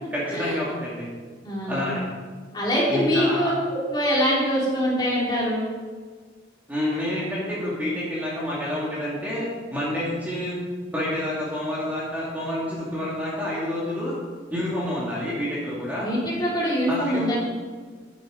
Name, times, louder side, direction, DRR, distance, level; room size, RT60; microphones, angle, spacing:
voice 1, 0.1-1.1 1.6-2.0 2.9-3.5 6.7-10.6 10.9-14.1 14.5-16.1 16.9-17.3, left 1 dB, 10° right, -7 dB, 2.2 m, -28 dB
voice 2, 1.4-1.9 2.5-5.7 16.0-17.4, equal, 25° left, -5 dB, 3.4 m, -24 dB
11.5 x 8.5 x 5.1 m, 1.5 s
head